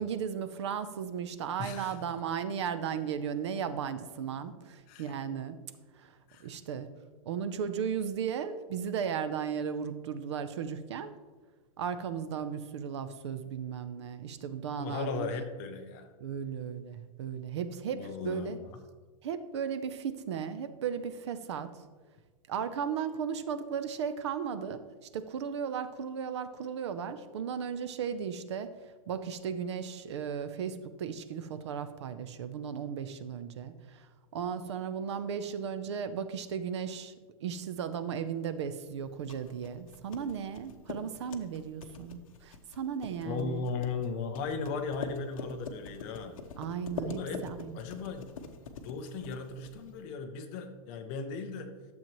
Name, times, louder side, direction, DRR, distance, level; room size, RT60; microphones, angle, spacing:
voice 1, 0.0-5.6 6.0-6.1 6.4-6.9 7.3-11.1 11.8-15.3 16.2-18.6 19.2-21.7 22.5-24.8 25.1-28.7 29.1-34.1 34.3-37.1 37.4-43.7 46.6-47.8, right 7 dB, 50° right, 12 dB, 0.5 m, -35 dB
voice 2, 1.6-2.0 4.9-5.1 6.3-6.5 14.8-16.1 17.9-18.7 43.2-46.4 47.1-47.5 47.7-48.3 48.8-51.7, left 4 dB, 20° left, 6 dB, 0.5 m, -37 dB
sound 1, 39.0-50.0, left 5 dB, 60° left, 0.9 m, -45 dB
12.0 x 7.2 x 3.0 m, 1.4 s
supercardioid pair, 175°, 19 cm